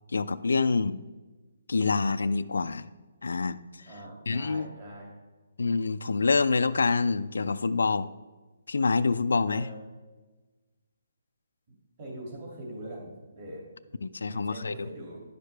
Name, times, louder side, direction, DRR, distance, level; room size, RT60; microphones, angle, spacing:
voice 1, 0.1-1.0 1.7-2.9 3.2-3.6 4.3-4.7 5.6-8.1 8.7-9.7 14.0-14.9, left 4 dB, 90° left, 12 dB, 0.4 m, -26 dB
voice 2, 3.9-5.1 9.5-9.8 12.0-13.7 14.2-15.2, right 1 dB, 30° right, -2 dB, 2.4 m, -42 dB
10.5 x 6.6 x 3.4 m, 1.2 s
hypercardioid pair, 170°, 0 cm